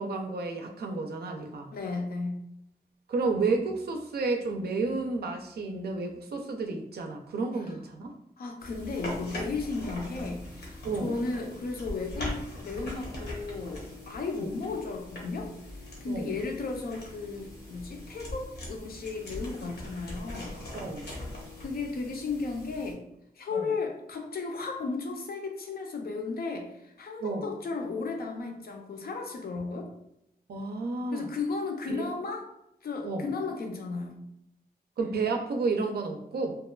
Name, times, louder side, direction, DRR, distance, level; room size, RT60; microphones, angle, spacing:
voice 1, 0.0-1.7 3.1-8.1 10.8-11.2 14.4-14.5 16.1-16.3 20.7-21.1 23.5-23.7 27.2-27.5 30.5-31.3 31.9-32.0 33.0-33.3 35.0-36.6, right 3 dB, 75° right, 3 dB, 0.4 m, -31 dB
voice 2, 1.7-2.4 7.5-7.8 8.4-15.5 16.0-20.6 21.6-23.0 23.3-29.9 31.1-32.5 32.8-34.2, left 4 dB, 70° left, 2 dB, 0.5 m, -34 dB
sound 1, 8.6-22.9, left 1 dB, 85° left, 0.8 m, -41 dB
2.9 x 2.2 x 2.2 m, 0.79 s
wide cardioid pair, 170°, 16 cm